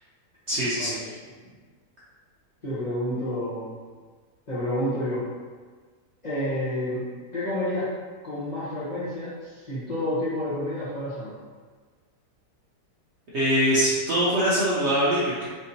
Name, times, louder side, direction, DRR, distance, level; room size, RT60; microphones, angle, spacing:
voice 1, 0.5-1.0 13.3-15.5, equal, 60° right, -9 dB, 0.7 m, -23 dB
voice 2, 2.6-3.8 4.5-5.2 6.2-7.0 7.3-7.9 8.2-11.4, left 1 dB, 35° left, -12 dB, 0.7 m, -29 dB
3.4 x 2.7 x 2.7 m, 1.5 s
omnidirectional pair, 1.7 m